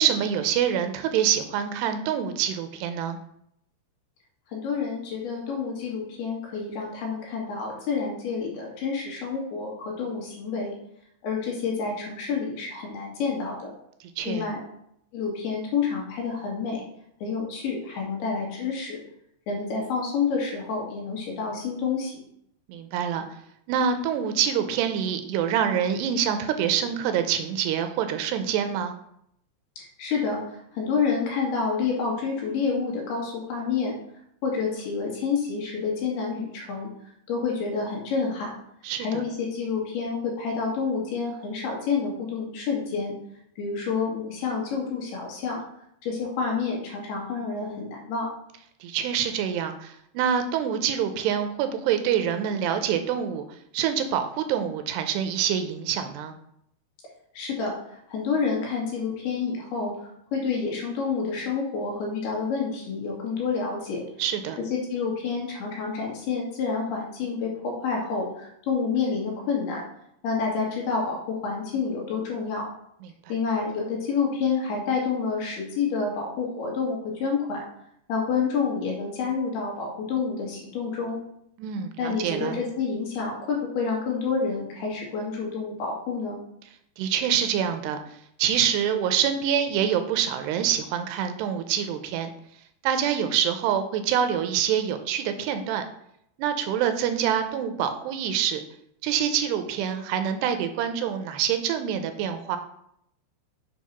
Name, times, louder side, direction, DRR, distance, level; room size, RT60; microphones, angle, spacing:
voice 1, 0.0-3.2 14.0-14.5 22.7-23.3 23.7-28.9 38.8-39.2 48.8-53.4 53.7-56.3 64.2-64.6 73.0-73.1 81.6-82.6 87.0-88.0 88.4-92.3 92.8-95.8 96.4-98.6 99.0-102.6, right 8 dB, 80° right, 8 dB, 2.7 m, -26 dB
voice 2, 4.5-10.7 11.2-13.7 14.3-14.6 15.1-16.8 17.2-19.0 19.5-22.2 29.8-30.4 30.7-34.0 34.4-36.9 37.3-38.6 39.0-43.1 43.6-45.6 46.0-48.3 57.4-57.8 58.1-64.0 64.7-69.8 70.2-72.7 73.3-77.6 78.1-81.2 82.0-86.4, left 5 dB, 70° left, -2 dB, 3.7 m, -28 dB
7.1 x 4.7 x 5.6 m, 0.74 s
omnidirectional pair, 4.9 m